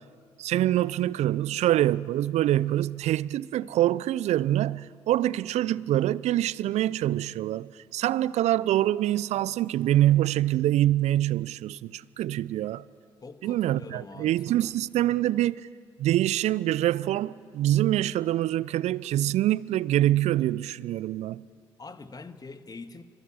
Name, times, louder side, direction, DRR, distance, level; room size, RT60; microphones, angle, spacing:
voice 1, 0.4-12.8 13.4-15.6 16.0-21.5, right 13 dB, 60° right, 0.6 m, -25 dB
voice 2, 13.2-14.7 21.8-23.0, left 3 dB, 30° left, 1.7 m, -44 dB
26.5 x 23.0 x 8.8 m
hypercardioid pair, 45°, 13 cm